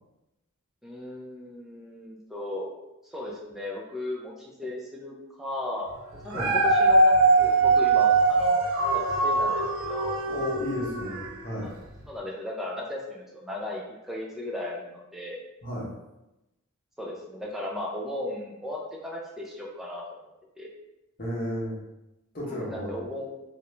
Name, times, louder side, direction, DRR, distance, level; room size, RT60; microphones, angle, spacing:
voice 1, 0.8-2.7 3.1-5.9 6.2-8.7 8.9-10.1 11.6-11.7 12.1-15.4 17.0-20.0 20.6-20.7 22.6-23.4, left 1 dB, ahead, -3 dB, 0.4 m, -36 dB
Dog, 6.1-11.5 12.0-12.1, right 3 dB, 70° right, 0.5 m, -22 dB
voice 2, 10.3-11.7 15.6-15.9 21.2-21.8 22.3-23.0, equal, 40° left, -5 dB, 0.8 m, -33 dB
2.4 x 2.1 x 3.0 m, 0.95 s
head